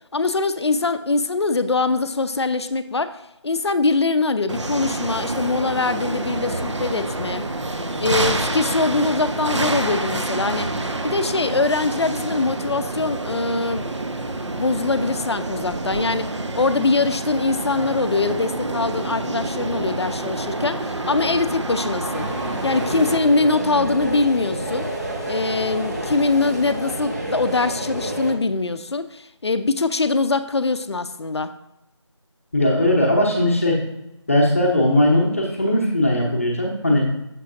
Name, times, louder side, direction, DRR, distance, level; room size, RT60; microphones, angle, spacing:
voice 1, 0.1-3.1 3.4-7.4 8.0-10.7 11.0-13.9 14.6-22.3 22.6-24.9 25.3-31.5, left 3 dB, 60° left, 11 dB, 0.4 m, -22 dB
sound 1, 4.5-23.2, right 2 dB, 75° right, 0.6 m, -27 dB
sound 2, 22.1-28.3, right 1 dB, 35° right, 0.8 m, -29 dB
voice 2, 32.5-33.8 34.3-37.1, left 1 dB, 25° left, -1 dB, 0.7 m, -19 dB
6.6 x 5.7 x 2.5 m, 0.90 s
figure-of-eight pair, 170°, 15 cm